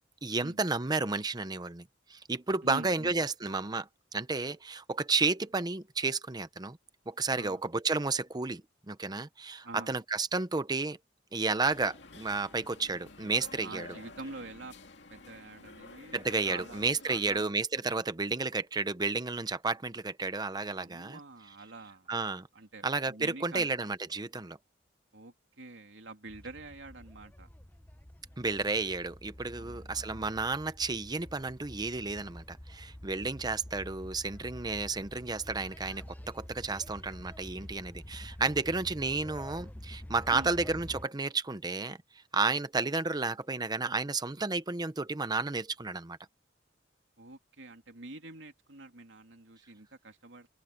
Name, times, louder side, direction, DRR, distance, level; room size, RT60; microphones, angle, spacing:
voice 1, 0.2-6.8 7.1-11.0 11.3-13.9 16.1-21.2 22.1-22.5 22.8-24.6 28.4-42.0 42.3-46.2, right 3 dB, 20° right, 0.8 m, -32 dB
voice 2, 2.6-3.1 7.4-7.6 9.6-9.9 13.6-14.8 15.1-17.5 20.8-22.1 22.5-23.7 25.1-27.5 29.6-30.3 40.3-40.5 47.2-50.5, right 2 dB, 85° right, 2.9 m, -46 dB
sound 1, 11.7-17.5, left 3 dB, 70° left, 2.6 m, -50 dB
sound 2, 26.3-41.1, left 1 dB, 10° left, 0.8 m, -48 dB
head